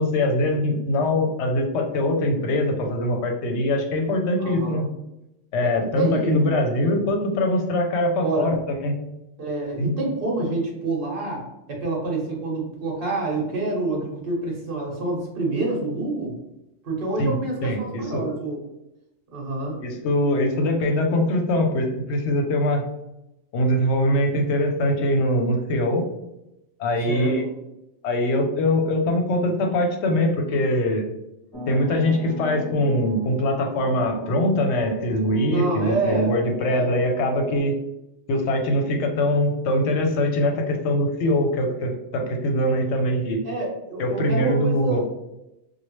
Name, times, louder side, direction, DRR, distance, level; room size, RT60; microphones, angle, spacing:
voice 1, 0.0-4.8 5.5-8.9 9.8-9.9 17.2-18.3 19.8-22.8 23.5-26.1 26.8-27.4 28.0-31.0 31.7-37.7 38.3-43.4 44.0-45.0, left 1 dB, 70° left, 3 dB, 0.8 m, -22 dB
voice 2, 4.4-4.8 5.6-5.7 5.9-6.6 8.2-8.5 9.4-16.3 16.8-18.6 19.3-19.8 27.1-27.5 35.5-36.3 36.6-37.0 43.4-45.0, right 2 dB, 50° right, -1 dB, 1.1 m, -27 dB
sound 1, 31.5-37.6, equal, 30° left, 0.8 m, -35 dB
3.0 x 2.3 x 3.0 m, 0.89 s
omnidirectional pair, 1.3 m